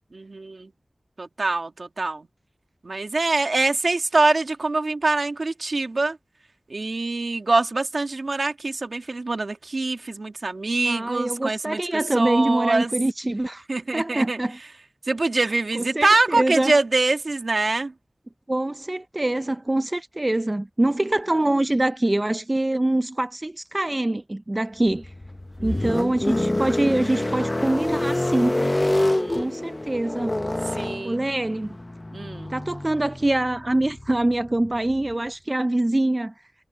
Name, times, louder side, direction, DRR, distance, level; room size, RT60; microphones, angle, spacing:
voice 1, 0.1-0.7 1.2-2.3 2.8-6.2 6.7-11.8 12.1-12.9 13.7-14.4 15.1-17.9 25.6-25.9 28.9-29.5 30.7-31.3 32.1-32.6, right 3 dB, 70° right, 2.3 m, -24 dB
voice 2, 10.8-13.7 13.9-14.6 15.4-16.8 18.5-25.1 25.6-28.6 29.3-30.3 31.0-31.8 32.5-36.3, right 1 dB, 35° right, 0.5 m, -24 dB
sound 1, 24.9-35.1, left 1 dB, 30° left, 0.7 m, -27 dB
wide cardioid pair, 45°, 0 cm